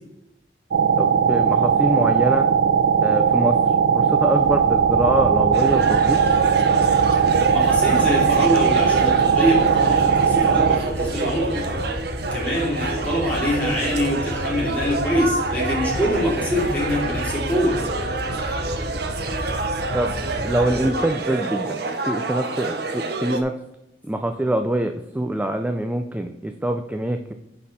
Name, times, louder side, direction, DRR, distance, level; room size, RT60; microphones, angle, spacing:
sound 1, 0.7-10.8, right 7 dB, 80° right, 0.4 m, -18 dB
voice 1, 1.0-2.5 3.0-6.2 19.9-20.2 20.4-23.5 24.0-27.3, right 1 dB, 10° right, 6 dB, 0.3 m, -24 dB
Wind / Boat Water vehicle, 4.4-20.9, left 1 dB, 75° left, 0.8 m, -33 dB
sound 2, 5.5-23.4, right 3 dB, 60° right, 0.8 m, -28 dB
voice 2, 7.5-11.8 12.3-17.8, equal, 10° left, -6 dB, 3.1 m, -24 dB
10.0 x 4.1 x 4.2 m, 0.86 s
head